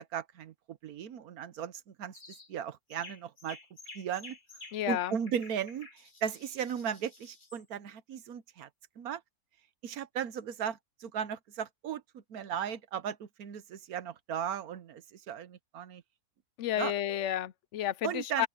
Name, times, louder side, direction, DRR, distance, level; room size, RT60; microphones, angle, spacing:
voice 1, 0.0-1.7 2.0-2.1 2.5-3.6 3.9-4.4 4.9-5.9 6.2-8.7 9.0-9.2 9.8-16.0 16.8-16.9 18.0-18.5, right 8 dB, 70° right, 1.3 m, -36 dB
sound 1, 2.1-2.5 2.9-7.6, left 3 dB, 30° left, 1.9 m, -51 dB
voice 2, 4.7-5.2 16.6-18.5, left 12 dB, 65° left, 0.7 m, -31 dB
open air
omnidirectional pair, 1.6 m